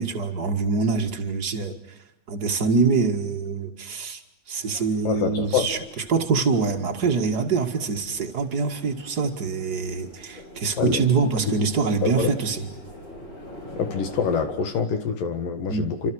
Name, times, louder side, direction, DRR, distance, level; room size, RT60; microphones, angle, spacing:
voice 1, 0.0-1.7 2.3-4.2 4.5-5.8 6.1-12.7 15.7-15.9, right 4 dB, 55° right, 4 dB, 1.1 m, -24 dB
sound 1, 4.6-14.4, equal, 20° left, 8.4 m, -44 dB
voice 2, 5.0-5.7 10.8-11.1 12.0-12.3 13.8-16.1, left 6 dB, 60° left, 9 dB, 3.0 m, -25 dB
28.5 x 26.5 x 6.4 m, 0.88 s
omnidirectional pair, 5.1 m